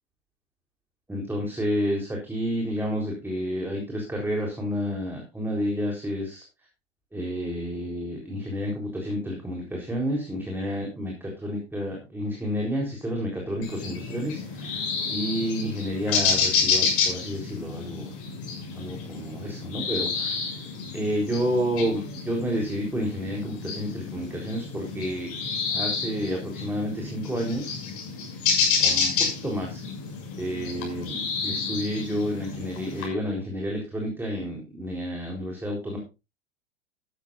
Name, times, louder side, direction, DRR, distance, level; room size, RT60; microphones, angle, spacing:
voice 1, 1.1-6.4 7.1-18.1 18.7-20.6 20.9-25.3 25.7-27.7 28.8-29.8 30.4-36.0, equal, 5° right, 0 dB, 4.0 m, -30 dB
sound 1, 13.6-33.1, left 5 dB, 40° left, 6.8 m, -29 dB
13.5 x 13.0 x 2.6 m, 0.28 s
figure-of-eight pair, 90°, 36 cm